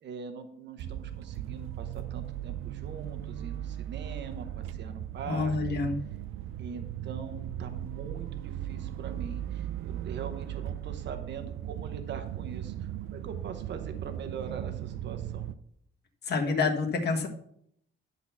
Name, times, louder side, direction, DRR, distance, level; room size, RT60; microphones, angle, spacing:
voice 1, 0.0-5.8 6.6-12.7 13.1-15.5, right 6 dB, 55° right, 7 dB, 1.0 m, -42 dB
sound 1, 0.8-15.5, right 11 dB, 75° right, 0.5 m, -37 dB
voice 2, 5.3-6.0 16.3-17.3, left 4 dB, 50° left, 3 dB, 1.5 m, -27 dB
10.5 x 4.0 x 6.9 m, 0.70 s
cardioid pair, 145°, 21 cm